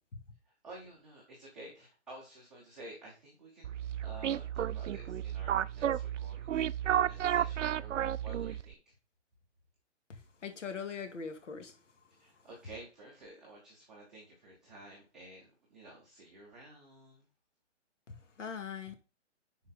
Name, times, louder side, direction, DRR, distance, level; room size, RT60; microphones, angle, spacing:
voice 1, 0.6-3.7 4.0-6.6 6.9-8.8 12.2-17.2, right 2 dB, ahead, 0.7 m, -52 dB
sound 1, 3.6-8.7, right 10 dB, 90° right, 0.6 m, -32 dB
voice 2, 10.1-11.7 18.1-18.9, left 6 dB, 85° left, 2.3 m, -41 dB
10.5 x 4.5 x 4.1 m
hypercardioid pair, 175°, 36 cm